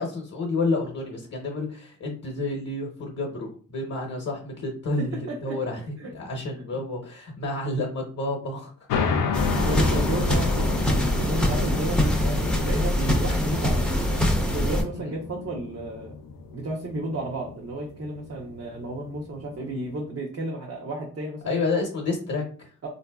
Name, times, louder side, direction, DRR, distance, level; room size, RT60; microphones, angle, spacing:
voice 1, 0.0-8.7 15.0-15.1 21.4-22.7, left 2 dB, 50° left, 0 dB, 0.8 m, -30 dB
voice 2, 5.0-5.6 6.0-6.1 6.5-6.8 9.5-16.2 16.5-21.6 22.8-22.9, right 2 dB, 45° right, -2 dB, 0.7 m, -33 dB
sound 1, 8.9-20.0, left 5 dB, 80° left, 0.5 m, -32 dB
sound 2, 9.3-14.8, left 1 dB, 5° left, 0.6 m, -23 dB
3.9 x 2.6 x 2.2 m, 0.42 s
cardioid pair, 105°, 33 cm